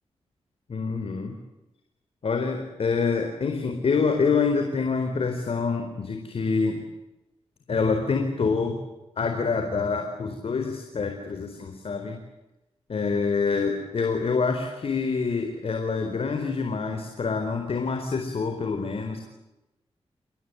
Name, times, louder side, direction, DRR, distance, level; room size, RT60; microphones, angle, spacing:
voice 1, 0.7-1.4 2.2-6.8 7.7-8.8 9.2-12.2 12.9-19.2, left 4 dB, 60° left, 5 dB, 4.4 m, -26 dB
30.0 x 20.5 x 9.6 m, 0.98 s
cardioid pair, 70°, 11 cm